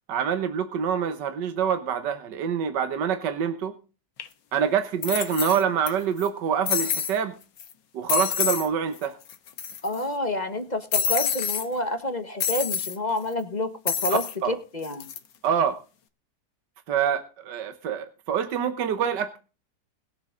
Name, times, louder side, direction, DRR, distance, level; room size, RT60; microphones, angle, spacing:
voice 1, 0.1-3.7 4.5-7.3 7.9-9.2 14.4-14.5 15.4-15.8 16.9-19.4, right 8 dB, 70° right, 1.7 m, -26 dB
sound 1, 4.2-4.3 5.0-5.9 6.2-6.3 6.7-7.2 7.6-7.7 8.1-8.7 9.0-9.1 9.3-10.0 10.9-11.7 12.4-13.0 13.9-14.4 14.8-15.2, left 8 dB, 80° left, 1.8 m, -27 dB
voice 2, 9.8-15.1, left 2 dB, 25° left, 1.4 m, -29 dB
21.0 x 7.8 x 3.7 m
omnidirectional pair, 1.9 m